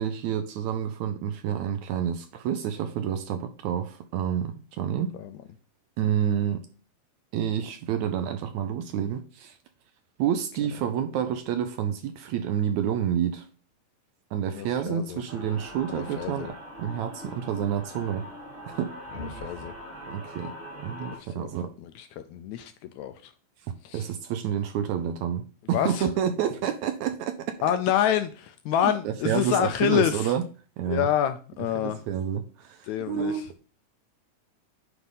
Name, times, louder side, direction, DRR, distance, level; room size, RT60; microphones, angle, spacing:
voice 1, 0.0-5.2 6.0-6.7 7.3-9.6 10.2-13.5 14.3-18.3 18.7-19.0 20.1-20.5 20.8-21.7 23.7-27.6 28.8-30.4 30.8-31.1 31.8-33.4, right 9 dB, 75° right, 1.8 m, -29 dB
voice 2, 14.5-15.2 15.9-16.5 19.3-19.7 21.2-23.3 23.8-24.1 25.7-26.1 27.6-30.3 30.9-32.0 32.8-33.5, left 10 dB, 80° left, 1.7 m, -28 dB
sound 1, 15.3-21.2, left 1 dB, 20° right, 1.6 m, -41 dB
9.6 x 3.4 x 5.5 m
omnidirectional pair, 3.8 m